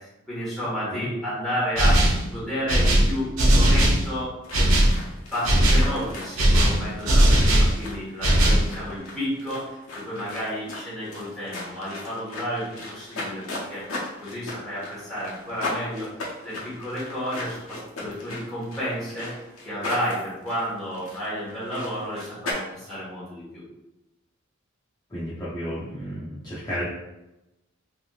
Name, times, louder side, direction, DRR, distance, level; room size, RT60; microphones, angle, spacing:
voice 1, 0.0-4.7 5.3-19.3 19.6-23.6, equal, ahead, -11 dB, 1.4 m, -31 dB
sound 1, 1.8-2.3 2.7-4.1 4.5-5.0 5.4-5.9 6.4-7.7 8.2-8.7, right 1 dB, 70° right, 0.6 m, -18 dB
sound 2, 4.4-22.5, left 2 dB, 80° left, 0.8 m, -37 dB
voice 2, 25.1-26.8, equal, 20° left, -9 dB, 0.5 m, -32 dB
3.3 x 2.7 x 2.4 m, 0.97 s
head